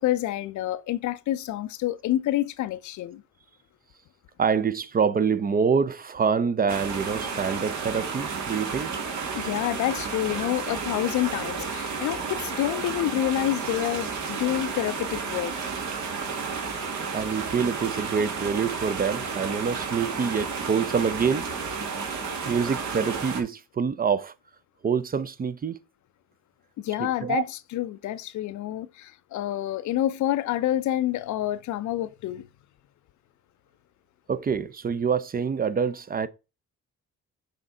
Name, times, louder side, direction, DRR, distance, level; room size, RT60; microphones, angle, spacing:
voice 1, 0.0-3.2 9.3-15.6 26.8-32.5, left 13 dB, 70° left, 0.5 m, -28 dB
voice 2, 4.4-9.0 17.1-21.5 22.5-24.3 24.8-25.8 27.0-27.4 34.3-36.3, right 6 dB, 30° right, 0.5 m, -26 dB
sound 1, 6.7-23.4, right 5 dB, 70° right, 1.7 m, -32 dB
6.4 x 4.4 x 3.7 m
cardioid pair, 90°, 30 cm